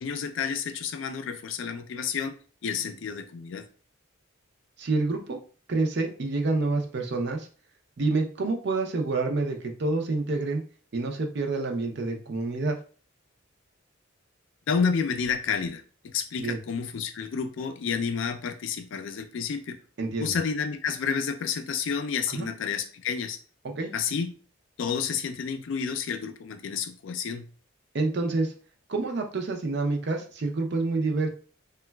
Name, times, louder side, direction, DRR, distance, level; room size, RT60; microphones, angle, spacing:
voice 1, 0.0-2.4 2.6-3.6 14.7-19.8 20.2-23.4 23.9-24.3 24.8-27.5, left 6 dB, 65° left, 8 dB, 0.4 m, -30 dB
voice 2, 4.8-5.4 5.7-7.5 8.0-10.6 10.9-12.8 16.4-16.6 20.0-20.4 22.3-22.5 23.6-23.9 27.9-28.5 28.9-31.3, right 3 dB, 55° right, 3 dB, 0.5 m, -28 dB
3.8 x 2.2 x 2.2 m, 0.40 s
head